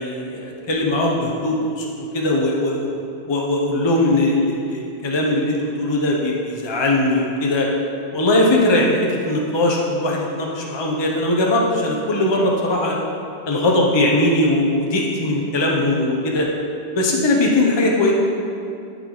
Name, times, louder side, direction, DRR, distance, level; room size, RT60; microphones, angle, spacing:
voice 1, 0.0-2.9 3.3-7.7 8.1-13.0 13.5-16.5 16.9-18.1, left 1 dB, 25° left, -1 dB, 0.8 m, -20 dB
11.5 x 4.9 x 3.9 m, 2.5 s
omnidirectional pair, 1.1 m